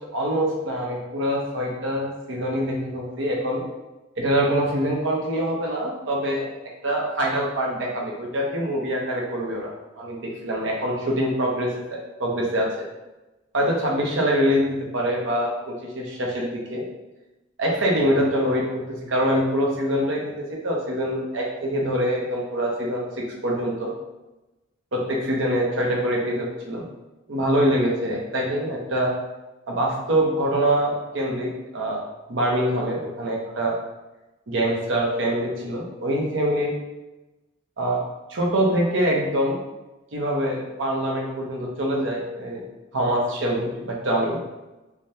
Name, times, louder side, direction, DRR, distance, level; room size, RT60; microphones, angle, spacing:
voice 1, 0.1-3.6 4.2-6.5 6.8-9.7 9.9-12.9 13.5-16.8 17.6-23.9 24.9-26.8 27.3-29.1 29.7-32.0 32.3-33.8 34.5-36.7 37.8-38.0 38.3-39.6 40.1-42.6 42.9-44.4, equal, 80° right, -2 dB, 0.7 m, -24 dB
3.3 x 2.2 x 2.7 m, 1.1 s
head